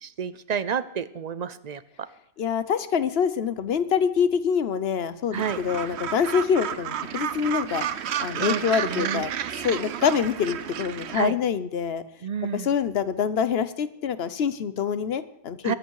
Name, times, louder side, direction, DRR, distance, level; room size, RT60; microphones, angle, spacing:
voice 1, 0.0-1.8 5.3-5.6 8.3-9.2 11.1-11.4 12.2-12.7 15.6-15.7, right 7 dB, 45° right, 15 dB, 0.6 m, -30 dB
voice 2, 2.4-7.8 8.2-9.3 9.6-12.0 12.5-15.8, left 7 dB, 70° left, 13 dB, 1.0 m, -25 dB
Gull seagull, 5.3-11.2, right 9 dB, 85° right, 1.0 m, -31 dB
22.0 x 8.1 x 4.7 m, 0.72 s
omnidirectional pair, 1.1 m